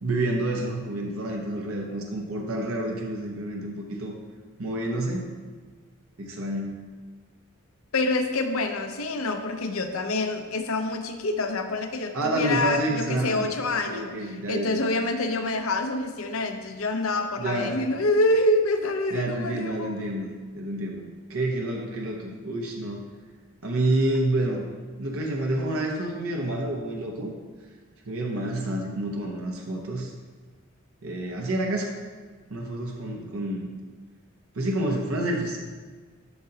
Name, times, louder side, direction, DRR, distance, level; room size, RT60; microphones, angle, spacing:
voice 1, 0.0-4.1 4.6-5.3 6.2-6.7 12.1-14.8 17.4-17.8 19.1-20.3 20.5-23.0 23.6-24.6 25.0-27.3 28.0-30.1 31.0-31.9 32.5-33.8 34.5-35.7, right 1 dB, 75° right, 0 dB, 0.9 m, -29 dB
voice 2, 7.9-19.9, left 2 dB, 75° left, 7 dB, 0.7 m, -26 dB
11.0 x 6.6 x 2.8 m, 1.4 s
head